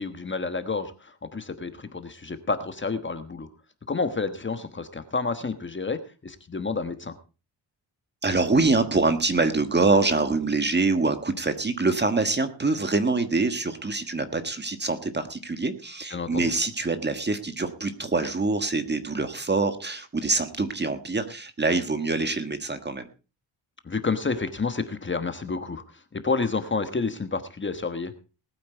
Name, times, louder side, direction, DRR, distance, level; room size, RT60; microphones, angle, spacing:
voice 1, 0.0-3.5 3.9-7.1 16.1-16.5 23.8-28.1, left 4 dB, 25° left, 9 dB, 1.3 m, -30 dB
voice 2, 8.2-23.1, right 3 dB, 25° right, 9 dB, 1.5 m, -25 dB
19.5 x 8.8 x 4.4 m, 0.34 s
wide cardioid pair, 140°, 43 cm